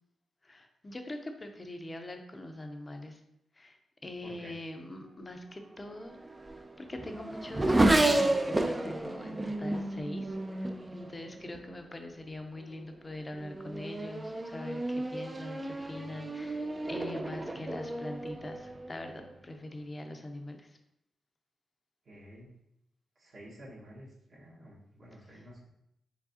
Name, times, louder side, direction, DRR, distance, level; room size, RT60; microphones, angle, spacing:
voice 1, 0.4-3.2 3.6-6.2 6.8-16.6 16.9-20.7, left 1 dB, 25° left, 5 dB, 0.6 m, -43 dB
voice 2, 4.2-4.6 22.0-22.5 23.1-25.7, equal, 60° right, -6 dB, 1.4 m, -51 dB
Race car auto racing / Accelerating revving vroom, 5.9-11.8 12.6-13.0 13.4-19.3, right 1 dB, 20° right, 0.4 m, -31 dB
4.6 x 3.4 x 2.8 m, 0.80 s
cardioid pair, 85°, 0 cm